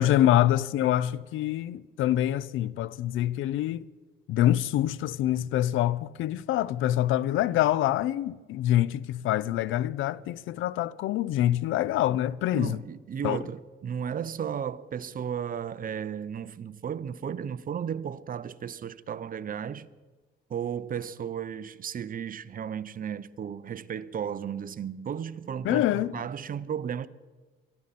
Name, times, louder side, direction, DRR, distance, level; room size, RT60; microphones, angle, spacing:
voice 1, 0.0-3.9 4.3-12.8 13.2-13.4 25.6-26.2, left 13 dB, 85° left, 0.5 m, -25 dB
voice 2, 12.5-19.9 20.5-27.1, right 8 dB, 45° right, 0.7 m, -34 dB
23.5 x 13.0 x 4.2 m
cardioid pair, 90°, 20 cm